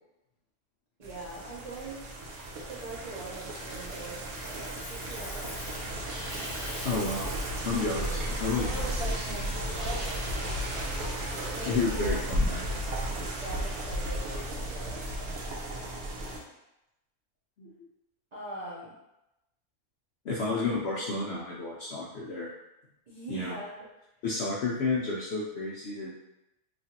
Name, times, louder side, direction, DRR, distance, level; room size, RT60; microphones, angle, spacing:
voice 1, 1.0-2.1 2.7-5.9 10.3-10.7 11.9-12.2 13.4-16.2 18.3-18.9 20.3-20.6 23.1-23.8, right 2 dB, 50° right, -8 dB, 0.5 m, -43 dB
sound 1, 1.0-16.4, right 1 dB, 75° right, 1.0 m, -34 dB
Coin (dropping), 3.5-5.9 6.2-7.6 10.5-10.7, left 4 dB, 85° left, 1.1 m, -47 dB
sound 2, 5.4-11.7, equal, 90° right, 1.6 m, -41 dB
voice 2, 6.8-7.3 7.6-9.5 11.6-12.7 17.6-17.9 20.2-22.5 23.3-23.6 24.2-26.2, left 3 dB, 70° left, -5 dB, 0.6 m, -31 dB
3.1 x 2.4 x 2.7 m, 0.91 s
omnidirectional pair, 1.6 m